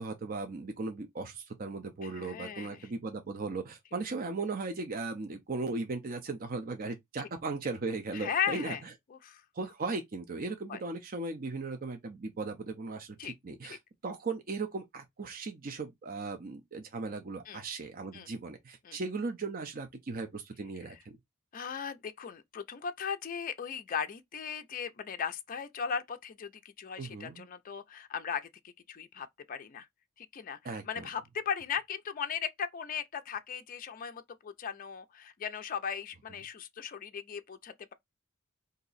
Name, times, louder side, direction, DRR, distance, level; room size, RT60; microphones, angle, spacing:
voice 1, 0.0-8.8 9.5-13.8 14.0-21.2 27.0-27.5 30.6-31.1, right 3 dB, 40° right, 0.6 m, -37 dB
voice 2, 2.0-2.9 8.1-8.8 9.1-9.4 10.7-10.8 13.2-13.3 13.6-13.8 17.5-17.6 18.1-18.3 18.8-19.0 21.5-26.5 26.8-28.5 28.9-29.9 30.2-30.6 30.9-37.9, left 7 dB, 40° left, 0.4 m, -37 dB
2.9 x 2.7 x 4.0 m
head